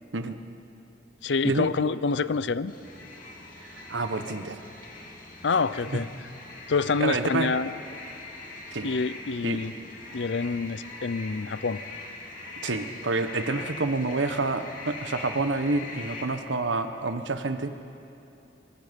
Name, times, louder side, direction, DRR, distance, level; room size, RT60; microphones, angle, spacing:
voice 1, 1.2-2.7 5.4-6.1 6.7-7.7 8.8-9.8 10.1-11.8, left 4 dB, 75° left, 16 dB, 0.6 m, -27 dB
sound 1, 2.7-16.2, left 3 dB, 45° left, 2.9 m, -42 dB
voice 2, 3.6-4.6 5.9-6.0 7.0-7.5 8.7-8.9 9.4-9.6 12.6-17.7, right 3 dB, 90° right, 9 dB, 1.2 m, -28 dB
25.0 x 22.0 x 5.3 m, 2.8 s
head